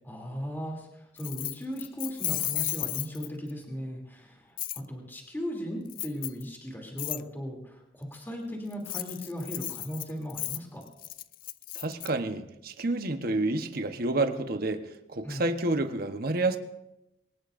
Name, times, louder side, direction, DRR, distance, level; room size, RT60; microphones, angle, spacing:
voice 1, 0.0-10.8 15.2-15.4, equal, 10° left, 0 dB, 3.0 m, -37 dB
Keys jangling, 1.2-3.5 4.6-4.8 5.9-6.4 7.0-7.2 8.7-12.1, left 16 dB, 50° left, 0.4 m, -34 dB
voice 2, 11.7-14.8 15.1-16.6, right 2 dB, 55° right, 7 dB, 1.2 m, -29 dB
23.5 x 19.0 x 2.6 m, 0.90 s
head